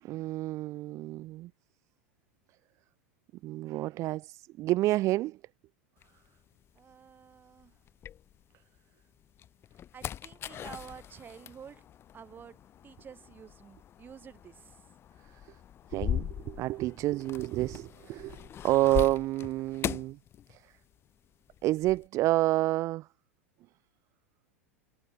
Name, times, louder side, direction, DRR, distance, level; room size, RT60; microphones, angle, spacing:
voice 1, 0.0-1.5 3.4-5.4 15.3-15.6 15.9-20.2 20.5-20.6 21.6-23.1, right 17 dB, 40° right, 1.4 m, -29 dB
sound 1, 6.0-8.8 9.2-21.0 21.2-22.1, left 10 dB, 30° left, 2.2 m, -40 dB
voice 2, 6.8-7.8 9.9-11.8 12.1-14.9, right 7 dB, 25° right, 5.3 m, -50 dB
figure-of-eight pair, 85°, 8 cm